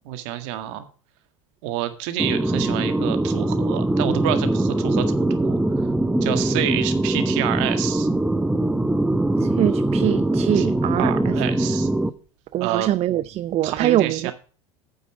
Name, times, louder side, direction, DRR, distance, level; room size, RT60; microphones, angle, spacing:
voice 1, 0.1-0.9 1.6-5.6 6.2-8.1 10.5-10.7 10.9-11.9 12.6-12.9 13.6-14.3, right 12 dB, 70° right, 1.8 m, -28 dB
sound 1, 2.2-12.1, right 1 dB, 5° right, 0.8 m, -22 dB
voice 2, 9.6-11.3 12.5-14.3, right 13 dB, 40° right, 0.5 m, -23 dB
9.3 x 8.2 x 4.9 m
hypercardioid pair, 95°, 16 cm